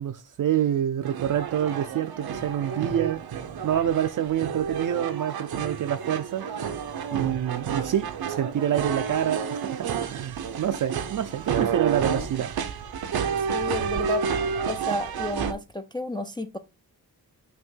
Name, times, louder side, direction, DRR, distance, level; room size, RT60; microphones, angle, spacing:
voice 1, 0.0-3.2 3.6-6.5 7.1-12.5, right 10 dB, 60° right, 0.5 m, -27 dB
sound 1, 1.0-15.5, right 7 dB, 85° right, 0.8 m, -30 dB
voice 2, 13.5-14.3 14.6-16.6, left 1 dB, 15° left, 0.3 m, -31 dB
5.8 x 3.0 x 5.4 m
wide cardioid pair, 150°, 36 cm